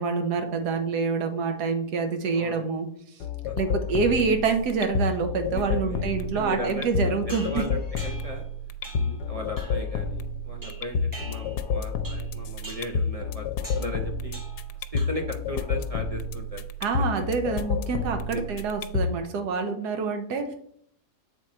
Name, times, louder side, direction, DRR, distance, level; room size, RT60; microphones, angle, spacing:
voice 1, 0.0-2.9 3.6-7.6 16.8-20.6, right 5 dB, 85° right, 6 dB, 1.5 m, -27 dB
voice 2, 2.3-2.7 3.5-3.6 5.5-8.4 8.9-14.4 14.9-16.6 18.3-18.6, equal, 50° right, 2 dB, 0.4 m, -37 dB
sound 1, 3.2-19.2, left 4 dB, 85° left, 1.1 m, -30 dB
sound 2, 7.3-8.4 8.8-9.2 9.6-9.9 10.6-11.7 12.0-12.3 12.6-13.0 13.6-13.9 14.3-14.7 15.0-15.4, right 1 dB, 15° right, 1.4 m, -43 dB
7.9 x 3.8 x 4.3 m, 0.64 s
omnidirectional pair, 1.7 m